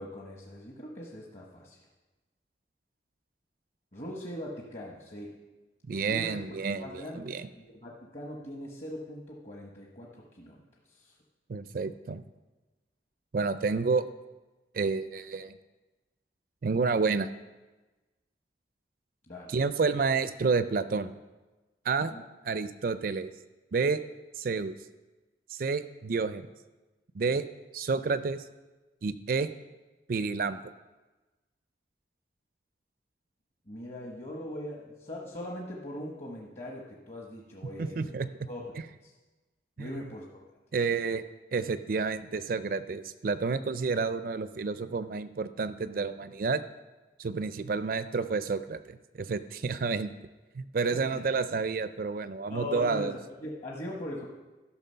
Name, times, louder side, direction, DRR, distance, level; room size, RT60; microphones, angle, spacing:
voice 1, 0.0-1.8 3.9-5.3 6.0-6.5 6.8-10.6 10.9-11.1 19.3-19.5 22.1-22.2 33.7-38.1 38.5-39.1 39.8-40.4 50.9-51.2 52.5-54.3, left 1 dB, 40° left, -2 dB, 1.1 m, -41 dB
voice 2, 5.9-7.5 11.5-12.2 13.3-14.0 14.7-15.6 16.6-17.3 19.5-21.1 21.8-22.1 22.4-23.3 23.7-24.0 24.4-24.8 25.5-26.5 27.1-27.4 27.7-28.4 29.0-29.5 30.1-30.6 37.8-38.3 39.8-39.9 40.7-41.2 41.5-46.6 47.2-50.1 50.5-53.2, right 4 dB, 55° right, 13 dB, 0.4 m, -30 dB
13.0 x 5.9 x 5.6 m, 1.2 s
head